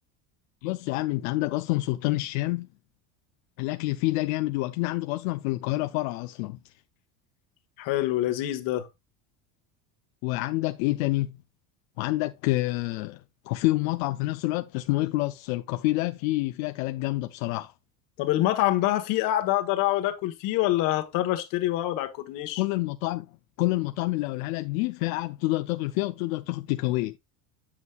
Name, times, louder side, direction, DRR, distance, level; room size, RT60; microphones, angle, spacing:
voice 1, 0.6-2.7 3.6-6.6 10.2-11.4 12.0-13.2 13.5-17.7 22.6-23.3 23.6-27.2, left 19 dB, 80° left, 0.6 m, -28 dB
voice 2, 7.8-8.9 18.2-22.6, left 15 dB, 55° left, 1.3 m, -26 dB
8.0 x 7.4 x 2.3 m
cardioid pair, 170°, 40 cm